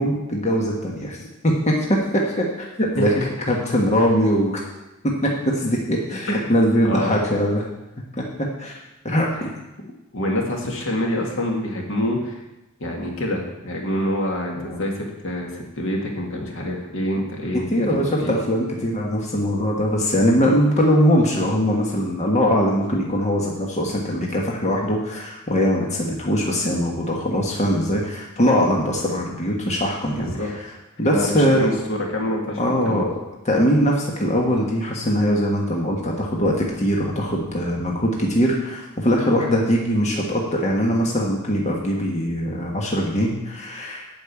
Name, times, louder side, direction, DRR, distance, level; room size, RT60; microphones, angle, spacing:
voice 1, 0.0-3.1 3.5-4.6 5.0-7.6 8.2-8.8 9.0-9.5 14.6-14.8 17.5-30.7 31.0-31.7 32.6-33.1 33.4-44.2, equal, 35° left, -1 dB, 1.5 m, -21 dB
voice 2, 6.8-7.2 9.4-9.5 10.1-12.4 12.8-18.4 30.2-30.5 31.0-33.1, left 1 dB, 65° left, 0 dB, 2.1 m, -26 dB
8.6 x 6.5 x 8.3 m, 0.97 s
head